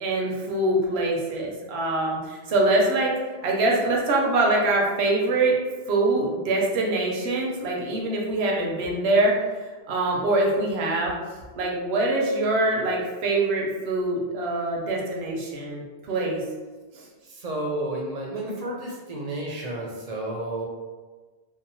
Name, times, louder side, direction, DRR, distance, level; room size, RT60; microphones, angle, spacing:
voice 1, 0.0-3.1 3.4-5.6 5.9-11.1 11.6-16.4 16.9-17.0, right 2 dB, 85° right, -2 dB, 0.9 m, -24 dB
voice 2, 17.2-20.6, right 1 dB, 50° right, -2 dB, 0.5 m, -31 dB
2.8 x 2.0 x 2.6 m, 1.3 s
omnidirectional pair, 1.1 m